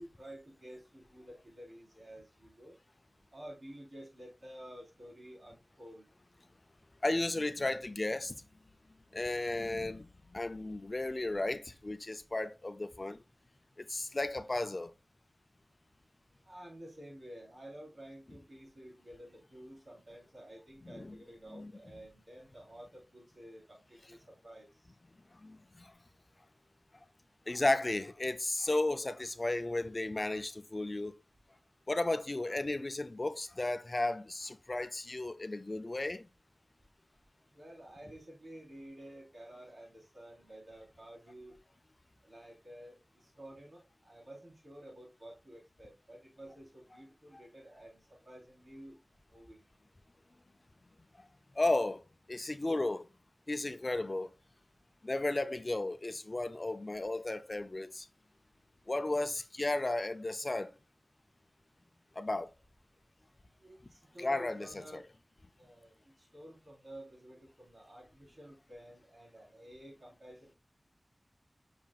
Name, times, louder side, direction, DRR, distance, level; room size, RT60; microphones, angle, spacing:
voice 1, 0.0-2.8 3.3-6.1 16.4-24.7 37.5-41.6 42.2-49.0 49.3-49.6 63.6-65.1 65.6-70.6, right 1 dB, 70° right, 3.9 m, -51 dB
voice 2, 7.0-8.3 9.1-13.2 13.9-14.9 20.8-21.2 21.5-21.7 25.4-25.9 27.5-31.1 31.9-36.3 51.6-52.0 52.3-53.1 53.5-54.3 55.0-58.1 58.9-60.7 62.2-62.5 64.2-65.0, left 2 dB, 40° left, 0.5 m, -34 dB
7.3 x 6.1 x 2.3 m
wide cardioid pair, 70°, 0 cm